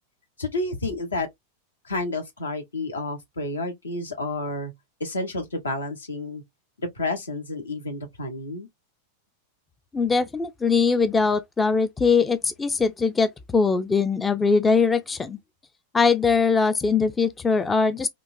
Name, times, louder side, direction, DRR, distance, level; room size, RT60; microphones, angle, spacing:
voice 1, 0.4-1.3 1.8-4.7 5.0-6.4 6.8-8.7, left 2 dB, 75° left, 0.9 m, -30 dB
voice 2, 9.9-15.4 15.9-18.1, left 4 dB, 15° left, 0.3 m, -21 dB
3.7 x 2.5 x 2.5 m
figure-of-eight pair, 90°, 0 cm